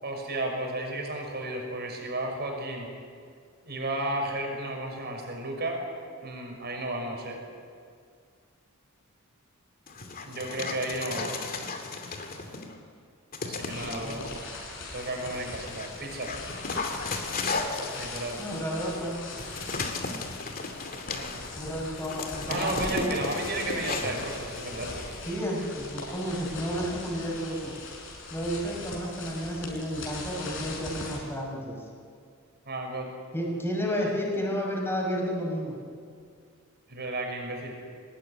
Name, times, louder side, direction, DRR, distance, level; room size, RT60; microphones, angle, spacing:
voice 1, 0.0-2.9 3.6-5.8 6.2-7.4 10.2-11.5 13.4-14.2 14.9-16.3 17.9-18.4 21.1-21.2 22.5-24.9 32.6-33.1 36.9-37.8, right 1 dB, 50° right, 1 dB, 6.2 m, -33 dB
Dog, 9.9-12.8 13.3-14.3 15.0-25.3, left 3 dB, 40° left, 2.5 m, -36 dB
sound 1, 13.6-31.2, left 3 dB, 65° left, 5.7 m, -40 dB
voice 2, 18.4-19.2 21.6-23.1 25.2-27.7 28.3-31.8 33.3-35.8, equal, 10° left, -3 dB, 6.2 m, -31 dB
23.5 x 19.5 x 10.0 m, 2.2 s
head